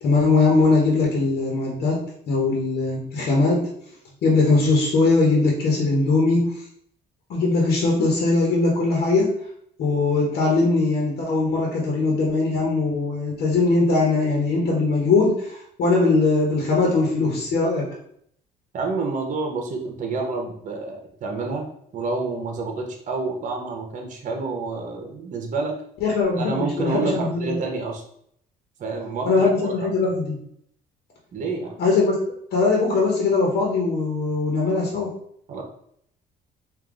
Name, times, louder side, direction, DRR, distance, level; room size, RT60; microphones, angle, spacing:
voice 1, 0.0-2.0 2.3-3.7 4.2-6.5 7.3-9.3 9.8-17.9 26.0-27.6 29.3-30.4 31.8-32.2 32.5-35.1, left 3 dB, 65° left, -2 dB, 1.2 m, -20 dB
voice 2, 18.7-25.7 26.4-28.0 28.8-29.7 31.3-31.7 35.5-35.6, right 3 dB, 50° right, 2 dB, 1.0 m, -28 dB
3.6 x 2.6 x 3.7 m, 0.68 s
cardioid pair, 110°, 17 cm